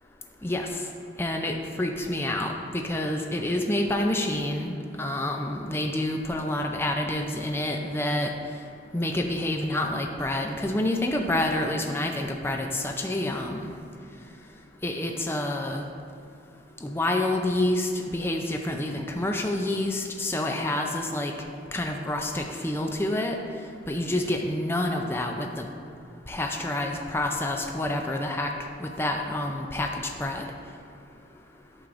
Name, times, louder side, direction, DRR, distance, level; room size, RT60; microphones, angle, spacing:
voice 1, 0.4-0.8 1.2-8.3 8.9-13.7 14.8-15.8 16.8-21.3 21.7-23.3 23.9-25.7 26.3-28.5 28.8-30.5, left 1 dB, 15° left, 2 dB, 0.4 m, -28 dB
9.1 x 6.1 x 2.5 m, 2.5 s
head